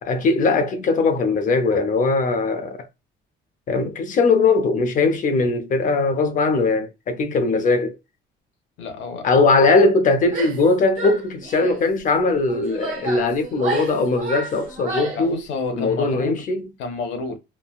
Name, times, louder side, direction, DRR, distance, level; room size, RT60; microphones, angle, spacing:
voice 1, 0.0-2.8 3.7-8.0 9.2-15.4 15.7-16.7, left 3 dB, 45° left, 0.6 m, -20 dB
voice 2, 8.8-9.7 15.1-16.4 16.8-17.4, left 4 dB, 85° left, 0.8 m, -30 dB
Female speech woman speaking / Yell, 10.2-10.7 11.0-11.8 12.5-15.3, right 3 dB, 40° right, 1.3 m, -31 dB
3.1 x 2.2 x 2.3 m
cardioid pair, 135°, 19 cm